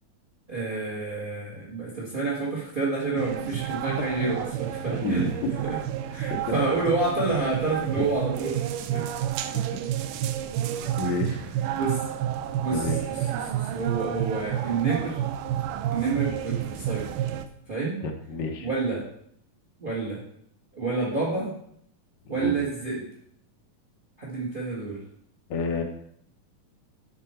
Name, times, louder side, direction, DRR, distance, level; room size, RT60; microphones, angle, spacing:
voice 1, 0.5-5.2 5.6-5.8 6.1-8.6 8.9-9.0 11.0-11.2 11.7-12.0 12.6-15.2 15.9-17.1 17.7-18.0 18.6-19.0 19.8-20.2 20.7-21.5 22.3-23.1 24.2-25.0, right 3 dB, 45° right, -5 dB, 0.6 m, -29 dB
sound 1, 3.2-17.5, right 11 dB, 80° right, 1.9 m, -30 dB
voice 2, 11.0-11.4 12.7-13.0 18.0-18.7 22.3-22.5 25.5-25.8, left 2 dB, 70° left, 2 dB, 1.6 m, -29 dB
12.0 x 4.5 x 4.4 m, 0.70 s
omnidirectional pair, 4.2 m